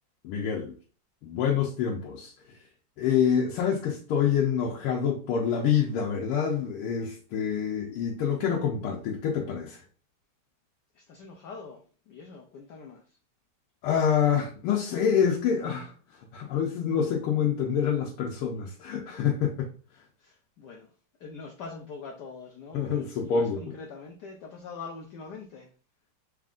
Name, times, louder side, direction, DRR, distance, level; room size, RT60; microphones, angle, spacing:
voice 1, 0.2-0.7 1.2-2.6 3.0-9.8 13.8-19.7 22.7-23.6, left 7 dB, 90° left, 1.6 m, -27 dB
voice 2, 10.9-13.0 20.2-20.9 21.2-23.0 23.3-25.7, left 4 dB, 75° left, 1.0 m, -43 dB
4.2 x 3.6 x 2.4 m
omnidirectional pair, 2.4 m